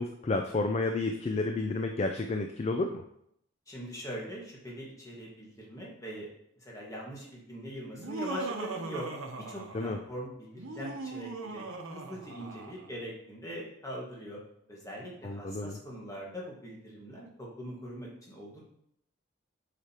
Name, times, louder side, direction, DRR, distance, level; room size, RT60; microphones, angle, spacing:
voice 1, 0.0-3.0 9.7-10.0 15.2-15.8, left 3 dB, 30° left, 5 dB, 0.4 m, -31 dB
voice 2, 3.7-6.3 6.6-9.1 9.5-14.4 14.7-18.7, equal, 15° left, -4 dB, 1.6 m, -42 dB
Laughter, 7.9-10.1 10.5-12.9, right 3 dB, 90° right, 0.8 m, -39 dB
7.8 x 5.0 x 2.9 m, 0.73 s
head